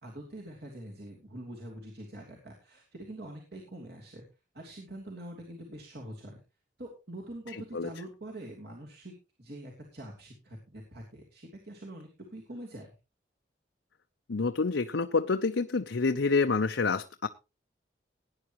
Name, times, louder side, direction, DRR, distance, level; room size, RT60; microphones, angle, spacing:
voice 1, 0.0-4.2 4.5-6.4 6.8-12.9, right 1 dB, 60° right, -1 dB, 2.9 m, -45 dB
voice 2, 7.5-7.9 14.3-17.3, left 4 dB, 85° left, 7 dB, 0.7 m, -28 dB
18.0 x 9.8 x 3.0 m, 0.29 s
head